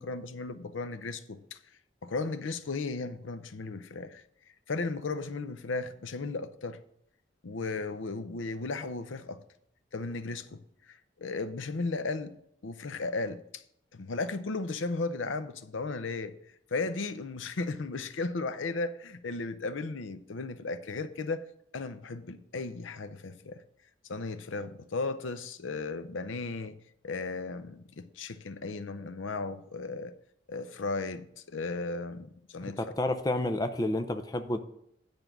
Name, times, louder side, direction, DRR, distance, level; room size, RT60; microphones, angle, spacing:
voice 1, 0.0-1.6 2.0-4.2 4.7-6.8 7.4-9.4 9.9-10.6 10.9-12.3 12.6-13.6 13.9-16.3 16.7-21.4 21.7-23.6 24.1-26.8 27.0-30.1 30.5-32.8, left 3 dB, 90° left, 12 dB, 0.6 m, -35 dB
voice 2, 32.6-34.6, left 1 dB, 20° left, 7 dB, 0.5 m, -30 dB
9.1 x 5.3 x 6.0 m, 0.71 s
head